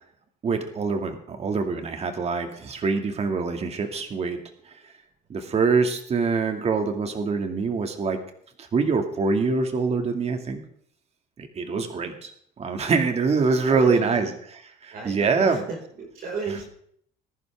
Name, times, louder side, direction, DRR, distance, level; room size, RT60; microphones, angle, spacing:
voice 1, 0.4-4.4 5.3-8.2 8.6-10.6 11.4-12.3 12.6-14.3 14.8-15.6, right 4 dB, 40° right, 5 dB, 2.2 m, -24 dB
voice 2, 11.6-12.2 13.6-14.3 14.9-16.8, right 4 dB, 60° right, 0 dB, 5.0 m, -36 dB
20.0 x 11.0 x 3.6 m, 0.64 s
cardioid pair, 110°, 17 cm